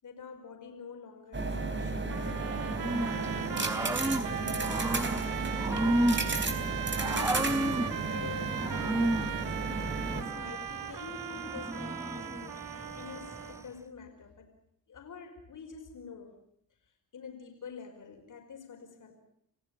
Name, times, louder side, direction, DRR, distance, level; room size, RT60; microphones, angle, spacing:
voice 1, 0.0-9.5 9.8-14.5 14.9-16.4 17.1-19.1, left 6 dB, 65° left, 3 dB, 5.1 m, -47 dB
sound 1, 1.3-10.2, right 3 dB, 35° right, 3.9 m, -33 dB
sound 2, 2.1-13.6, right 10 dB, 75° right, 1.2 m, -39 dB
Growling / Cricket, 2.8-13.7, right 1 dB, 10° right, 1.2 m, -34 dB
28.0 x 16.0 x 8.9 m, 0.69 s
cardioid pair, 80°, 33 cm